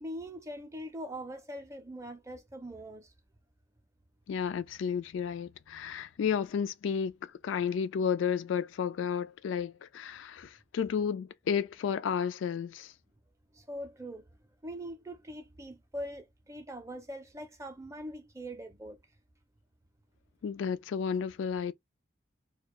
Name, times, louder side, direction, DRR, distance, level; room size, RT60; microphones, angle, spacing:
voice 1, 0.0-3.1 13.5-14.2 14.6-19.0, equal, 15° right, 0.5 m, -42 dB
voice 2, 4.3-12.9 20.4-21.7, left 7 dB, 75° left, 0.3 m, -32 dB
2.3 x 2.2 x 2.9 m
head